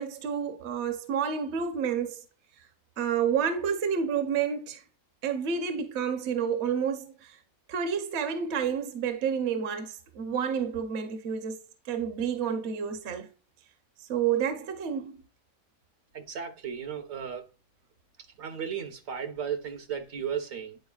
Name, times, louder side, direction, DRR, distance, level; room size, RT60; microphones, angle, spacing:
voice 1, 0.0-2.2 3.0-4.8 5.2-7.4 7.7-11.6 11.9-13.3 14.1-15.2, right 7 dB, 60° right, 1.0 m, -29 dB
voice 2, 16.1-17.4 18.4-20.8, right 7 dB, 80° right, 1.4 m, -35 dB
9.5 x 4.4 x 2.3 m
omnidirectional pair, 1.4 m